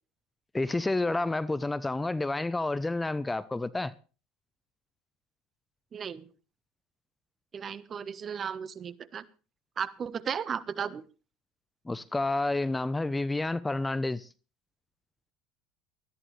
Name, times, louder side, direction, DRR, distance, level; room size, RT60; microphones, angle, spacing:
voice 1, 0.5-3.9 11.9-14.3, left 2 dB, 10° left, 0.9 m, -29 dB
voice 2, 5.9-6.3 7.5-9.2 9.8-11.0, right 7 dB, 35° right, 1.3 m, -35 dB
19.5 x 14.0 x 3.4 m
hypercardioid pair, 80°, 0 cm